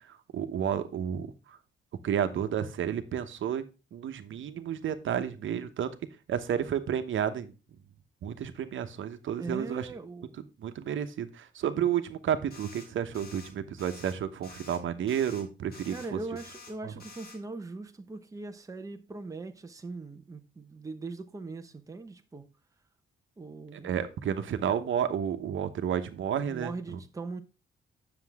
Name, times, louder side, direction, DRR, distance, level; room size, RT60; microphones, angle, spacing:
voice 1, 0.1-1.6 2.0-3.6 3.9-5.9 6.3-7.5 8.2-9.9 10.6-16.2 16.8-16.9 23.7-27.0, right 9 dB, 75° right, 1.1 m, -31 dB
voice 2, 9.4-10.4 15.9-22.5 23.4-24.0 26.5-27.4, right 3 dB, 15° right, 1.0 m, -40 dB
sound 1, 12.5-12.9 13.1-13.5 13.8-14.1 14.4-14.8 15.1-15.4 15.7-16.1 16.4-16.7 17.0-17.4, left 4 dB, 50° left, 4.1 m, -49 dB
9.7 x 6.9 x 3.5 m
wide cardioid pair, 155°, 20 cm